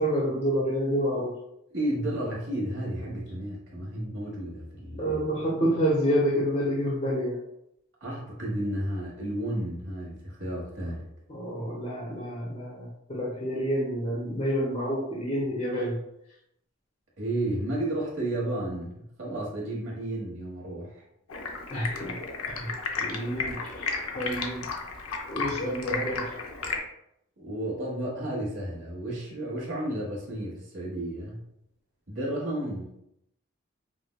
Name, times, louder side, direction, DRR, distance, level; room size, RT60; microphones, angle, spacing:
voice 1, 0.0-1.3 5.0-7.4 11.3-16.0 21.7-22.2 22.5-22.7 23.0-24.7 25.3-26.3, equal, 35° left, -6 dB, 0.7 m, -28 dB
voice 2, 1.7-5.2 8.0-11.0 17.2-21.0 27.4-31.4 32.1-32.9, right 1 dB, 60° right, -4 dB, 1.2 m, -32 dB
Stream, 21.3-26.8, left 4 dB, 85° left, 0.6 m, -33 dB
5.1 x 2.1 x 2.3 m, 0.78 s
head